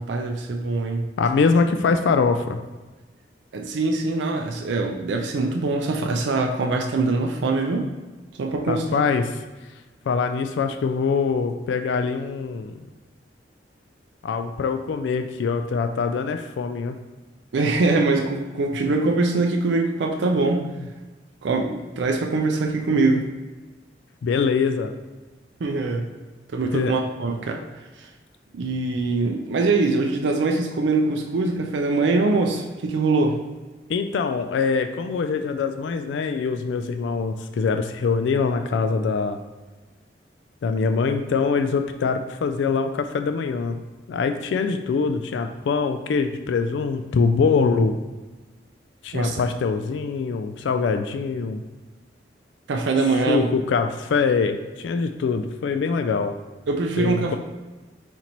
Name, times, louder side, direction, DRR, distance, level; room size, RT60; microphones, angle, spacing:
voice 1, 0.0-1.1 3.5-7.9 8.4-9.0 17.5-20.7 21.4-23.3 25.6-26.1 26.5-27.6 28.0-28.1 28.5-33.4 49.1-49.4 52.7-53.5 56.7-57.4, right 3 dB, 80° right, 2 dB, 0.4 m, -23 dB
voice 2, 1.2-2.6 8.7-9.4 10.1-12.9 14.2-17.0 20.8-20.9 24.2-24.9 26.7-26.9 30.6-30.7 33.9-39.4 40.6-43.8 44.1-47.9 49.0-51.6 53.1-56.4 57.0-57.4, left 5 dB, 85° left, 7 dB, 0.3 m, -23 dB
4.3 x 3.0 x 3.9 m, 1.2 s
head